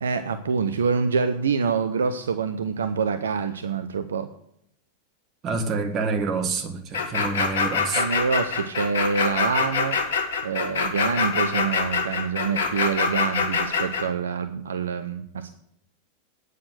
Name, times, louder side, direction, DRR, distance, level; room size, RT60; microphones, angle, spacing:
voice 1, 0.0-4.3 8.0-10.0 10.4-15.5, right 5 dB, 65° right, 0.6 m, -26 dB
voice 2, 5.4-8.1, right 4 dB, 30° right, 1.7 m, -27 dB
sound 1, 6.9-14.0, left 5 dB, 60° left, 1.7 m, -24 dB
9.4 x 6.6 x 8.0 m
figure-of-eight pair, 90°, 0 cm